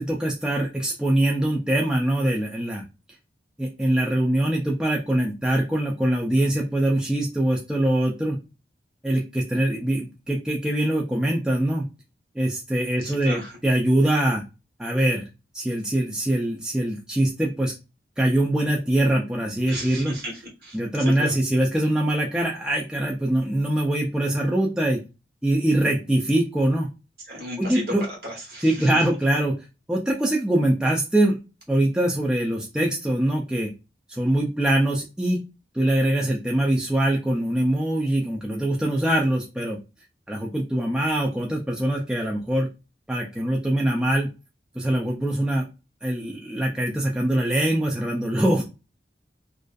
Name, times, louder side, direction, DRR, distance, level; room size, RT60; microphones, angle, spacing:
voice 1, 0.0-2.8 3.6-8.4 9.0-11.9 12.4-14.4 14.8-15.2 15.5-17.7 18.2-20.2 20.7-25.0 25.4-26.9 27.6-28.0 28.6-29.6 29.9-31.4 31.7-33.7 34.1-35.4 35.7-39.8 40.3-42.7 43.1-44.3 44.8-45.7 46.0-48.6, right 1 dB, 5° right, -2 dB, 0.3 m, -23 dB
voice 2, 13.0-13.5 19.7-20.3 20.6-21.4 27.3-28.9, equal, 60° right, -2 dB, 1.1 m, -34 dB
2.5 x 2.3 x 2.2 m, 0.28 s
head